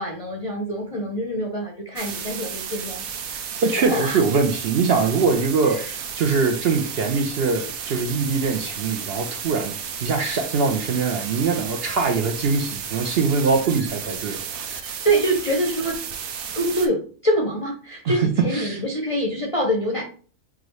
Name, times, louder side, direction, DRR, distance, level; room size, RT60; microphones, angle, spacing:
voice 1, 0.0-3.0 3.9-4.2 5.7-5.9 15.0-16.0 16.5-20.0, right 1 dB, 35° left, -1 dB, 0.5 m, -25 dB
sound 1, 2.0-16.9, right 7 dB, 90° right, 1.1 m, -33 dB
voice 2, 3.6-5.8 6.2-9.7 10.0-15.0 18.0-18.8, right 4 dB, 60° right, 4 dB, 0.7 m, -22 dB
4.7 x 2.6 x 3.1 m, 0.42 s
omnidirectional pair, 1.4 m